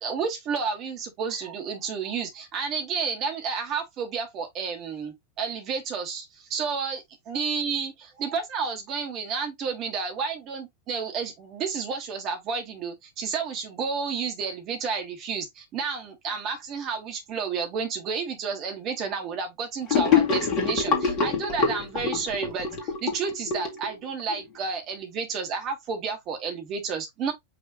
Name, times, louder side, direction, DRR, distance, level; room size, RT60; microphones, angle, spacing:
voice 1, 0.0-27.3, right 5 dB, 35° right, 1.6 m, -31 dB
Gurgling / Sink (filling or washing), 19.9-24.4, left 5 dB, 35° left, 1.9 m, -25 dB
5.3 x 3.0 x 2.8 m
figure-of-eight pair, 90°, 0 cm